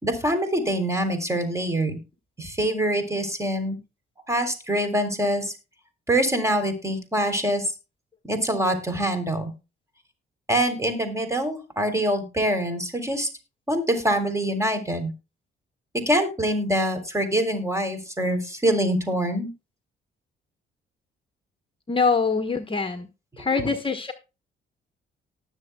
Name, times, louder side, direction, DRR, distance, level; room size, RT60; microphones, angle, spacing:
voice 1, 0.0-2.0 2.4-3.8 4.3-5.5 6.1-7.7 8.2-9.5 10.5-13.3 13.7-15.1 16.1-19.5, right 1 dB, 15° right, 8 dB, 3.5 m, -24 dB
voice 2, 21.9-23.1 23.4-24.1, left 4 dB, 25° left, 7 dB, 1.2 m, -24 dB
19.0 x 7.1 x 2.3 m, 0.29 s
cardioid pair, 90°, 20 cm